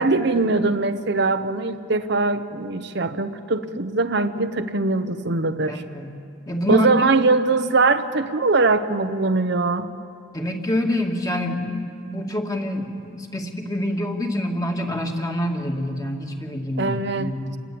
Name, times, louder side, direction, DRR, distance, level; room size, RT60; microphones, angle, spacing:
voice 1, 0.0-5.8 6.7-9.9 16.8-17.5, right 3 dB, 55° right, 9 dB, 0.9 m, -21 dB
voice 2, 5.7-6.1 6.5-6.9 10.3-17.5, left 1 dB, 20° left, 2 dB, 2.3 m, -26 dB
28.5 x 21.0 x 8.6 m, 2.4 s
head